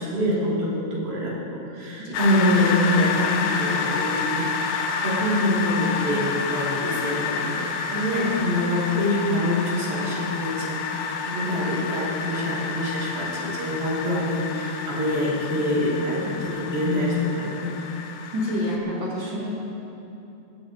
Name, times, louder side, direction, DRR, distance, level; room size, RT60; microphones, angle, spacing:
voice 1, 0.0-7.5 7.9-17.7, left 1 dB, 60° right, -7 dB, 4.4 m, -25 dB
sound 1, 2.1-18.8, left 5 dB, 75° left, 2.3 m, -29 dB
voice 2, 18.3-19.5, left 1 dB, 30° right, -7 dB, 2.7 m, -29 dB
19.0 x 15.0 x 2.9 m, 3.0 s
omnidirectional pair, 4.9 m